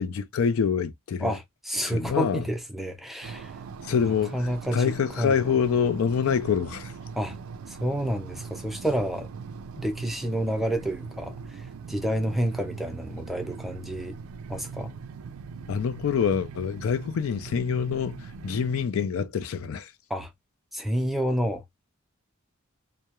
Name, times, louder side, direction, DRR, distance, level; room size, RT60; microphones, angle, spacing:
voice 1, 0.0-1.4 1.8-2.4 3.8-4.4 4.7-6.9 15.7-19.9, left 6 dB, 80° left, 0.4 m, -26 dB
voice 2, 1.2-3.6 4.0-5.5 7.2-7.4 7.7-9.3 9.8-14.2 14.5-14.9 20.1-20.3 20.7-21.6, equal, ahead, 0.4 m, -29 dB
sound 1, 3.2-18.9, right 5 dB, 90° right, 0.3 m, -41 dB
2.2 x 2.0 x 2.8 m
head